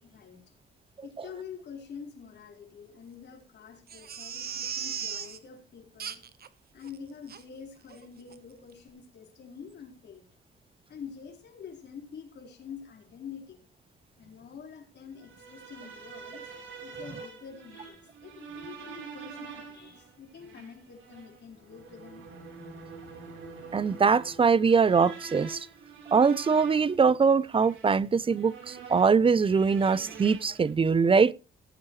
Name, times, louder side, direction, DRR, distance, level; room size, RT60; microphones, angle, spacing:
voice 1, 0.0-0.6 1.0-6.2 6.7-10.4 10.9-13.7 14.2-16.5 16.8-22.3, left 6 dB, 60° left, 4.5 m, -46 dB
Crying sobbing, 3.9-5.4 6.0-6.5 6.8-6.9 7.3-7.4 7.9-8.1 8.3-8.4, right 8 dB, 50° right, 1.2 m, -37 dB
sound 1, 15.2-30.7, right 5 dB, 80° right, 3.9 m, -46 dB
voice 2, 23.7-25.7 26.1-31.3, right 5 dB, 25° right, 0.5 m, -22 dB
18.0 x 8.7 x 3.1 m
cardioid pair, 90°, 20 cm